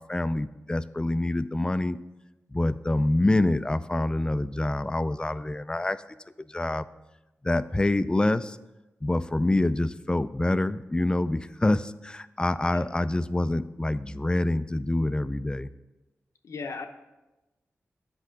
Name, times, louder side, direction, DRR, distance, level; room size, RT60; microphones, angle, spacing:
voice 1, 0.0-2.0 2.5-6.0 6.5-6.9 7.4-8.6 9.0-15.7, left 2 dB, 15° left, 14 dB, 0.3 m, -26 dB
voice 2, 16.4-16.9, left 4 dB, 85° left, 6 dB, 0.8 m, -36 dB
8.4 x 5.4 x 6.3 m, 1.0 s
wide cardioid pair, 80°, 5 cm